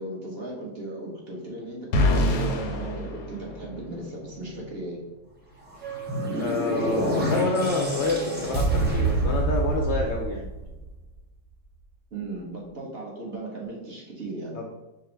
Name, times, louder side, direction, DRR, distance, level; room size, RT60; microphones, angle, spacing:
voice 1, 0.0-5.0 12.1-14.5, right 2 dB, 45° right, -3 dB, 1.1 m, -36 dB
sound 1, 1.9-4.1, left 1 dB, 85° left, 1.2 m, -25 dB
sound 2, 5.7-11.0, right 2 dB, 10° right, 0.5 m, -27 dB
Wind instrument woodwind instrument, 5.8-9.3, right 8 dB, 90° right, 1.3 m, -40 dB
voice 2, 6.3-10.5 14.5-14.7, left 3 dB, 65° left, 0 dB, 0.7 m, -28 dB
5.1 x 2.0 x 4.4 m, 1.0 s
omnidirectional pair, 1.7 m